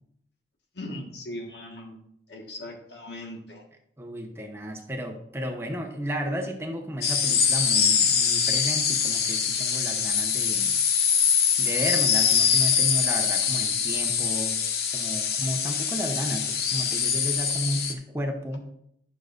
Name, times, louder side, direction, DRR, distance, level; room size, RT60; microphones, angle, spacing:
voice 1, 0.7-2.0 2.3-3.6, left 1 dB, 80° left, 1 dB, 1.6 m, -39 dB
voice 2, 4.0-10.8 11.6-14.6 14.9-18.7, equal, 15° right, 3 dB, 0.8 m, -33 dB
sound 1, 7.0-17.9, left 7 dB, 60° left, 0.8 m, -24 dB
11.5 x 6.4 x 2.5 m, 0.73 s
head